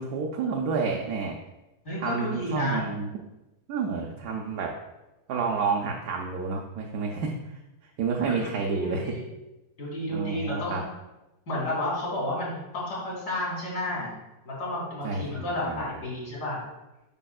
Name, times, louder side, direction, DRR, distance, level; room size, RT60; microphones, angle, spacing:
voice 1, 0.0-1.4 2.0-3.1 3.7-4.7 5.3-9.1 10.1-10.9 15.0-15.9, right 4 dB, 70° right, 0 dB, 1.1 m, -30 dB
voice 2, 1.8-2.9 8.3-9.2 9.8-10.8 11.5-14.2 14.4-16.6, left 1 dB, 85° left, -6 dB, 2.9 m, -31 dB
8.7 x 5.1 x 2.3 m, 0.99 s
omnidirectional pair, 1.7 m